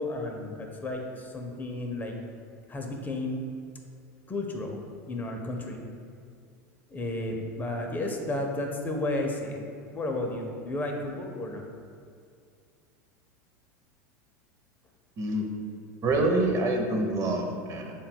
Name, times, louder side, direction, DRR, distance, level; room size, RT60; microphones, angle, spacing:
voice 1, 0.0-2.1 2.7-3.4 4.3-4.8 5.1-5.8 6.9-11.6, left 2 dB, 20° left, 2 dB, 0.4 m, -32 dB
voice 2, 15.2-15.5 16.0-17.9, right 2 dB, 35° right, 2 dB, 0.5 m, -26 dB
3.5 x 2.2 x 4.3 m, 2.3 s
hypercardioid pair, 100°, 9 cm